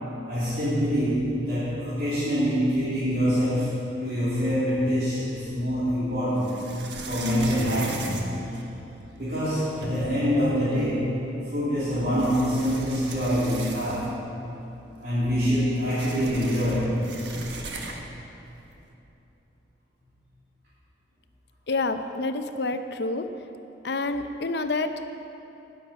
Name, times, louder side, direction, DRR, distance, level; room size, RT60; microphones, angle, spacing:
voice 1, 0.3-6.6 7.1-8.5 9.1-14.2 15.0-17.1, equal, 55° right, -12 dB, 3.2 m, -25 dB
sound 1, 4.8-5.6 6.3-9.1 9.5-9.6 9.8-10.3 11.4-11.5 12.1-14.3 14.6-14.7 15.0-18.2, right 3 dB, 75° right, 1.3 m, -39 dB
voice 2, 21.7-23.3 23.8-25.1, left 3 dB, 65° left, 8 dB, 0.7 m, -28 dB
18.0 x 7.2 x 5.8 m, 2.9 s
head